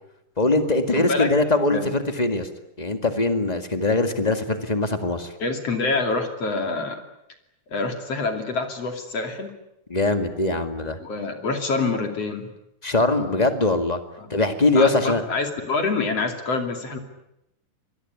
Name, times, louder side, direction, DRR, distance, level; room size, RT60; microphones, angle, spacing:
voice 1, 0.4-2.5 2.8-5.3 9.9-11.0 12.8-14.0 14.3-15.2, left 2 dB, 20° left, 7 dB, 1.0 m, -22 dB
voice 2, 1.0-1.3 1.7-1.9 5.4-7.0 7.7-9.5 11.0-12.5 14.2-14.3 14.8-17.0, left 3 dB, 45° left, 5 dB, 3.5 m, -26 dB
25.5 x 22.0 x 9.8 m, 0.85 s
omnidirectional pair, 4.2 m